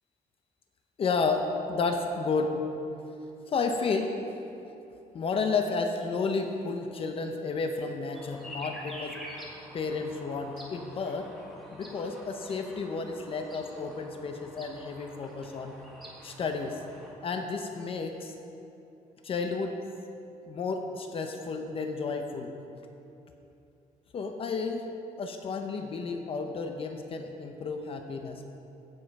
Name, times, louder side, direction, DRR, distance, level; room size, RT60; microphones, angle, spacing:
voice 1, 1.0-2.6 3.5-4.1 5.1-9.2 9.7-11.3 11.7-15.7 16.2-16.8 17.2-18.3 19.2-19.7 20.5-22.5 24.1-24.9 25.2-28.5, left 4 dB, 40° left, 5 dB, 0.7 m, -32 dB
sound 1, 8.1-17.1, equal, ahead, 1.5 m, -47 dB
15.0 x 5.5 x 5.3 m, 2.8 s
cardioid pair, 155°, 14 cm